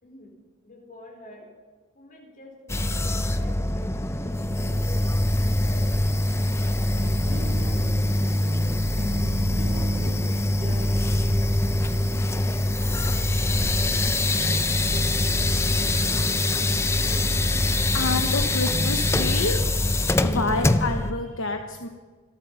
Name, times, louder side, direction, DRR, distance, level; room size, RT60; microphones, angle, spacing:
voice 1, 0.6-1.5 1.9-4.8 5.5-8.3 9.0-11.1 11.9-15.1, left 1 dB, 40° left, -1 dB, 4.6 m, -47 dB
sound 1, 2.7-21.1, left 1 dB, 10° left, 0.5 m, -23 dB
sound 2, 5.6-11.5, left 1 dB, 90° left, 1.8 m, -48 dB
sound 3, 6.9-19.3, right 1 dB, 40° right, 0.9 m, -37 dB
voice 2, 17.9-19.6 20.1-21.9, left 3 dB, 65° left, 5 dB, 1.0 m, -28 dB
26.0 x 8.7 x 5.6 m, 1.4 s
head